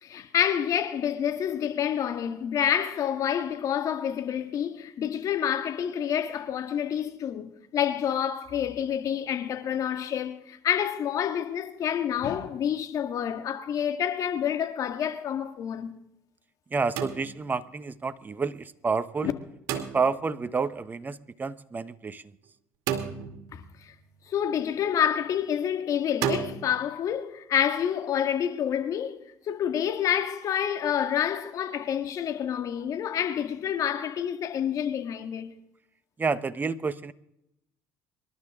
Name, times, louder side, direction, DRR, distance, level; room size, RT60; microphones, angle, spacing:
voice 1, 0.0-16.0 19.2-19.3 23.5-23.6 24.3-29.2 29.5-35.5, left 9 dB, 55° left, 1.8 m, -28 dB
voice 2, 16.7-19.3 19.8-22.2 36.2-37.1, right 4 dB, 25° right, 1.1 m, -29 dB
sound 1, 17.0-17.7 19.7-20.4 22.9-23.7 26.2-26.6, right 8 dB, 70° right, 2.2 m, -32 dB
26.5 x 12.0 x 3.7 m
supercardioid pair, 70°, 7 cm